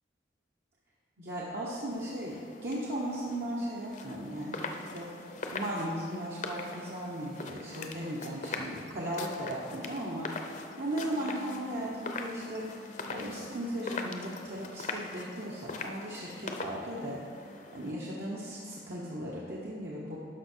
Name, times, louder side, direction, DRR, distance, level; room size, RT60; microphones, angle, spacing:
voice 1, 1.2-2.4 2.6-5.1 5.5-20.2, right 1 dB, 65° right, -6 dB, 1.2 m, -37 dB
sound 1, 1.9-17.9, left 3 dB, 45° left, 0.6 m, -42 dB
11.5 x 5.8 x 4.5 m, 2.3 s
head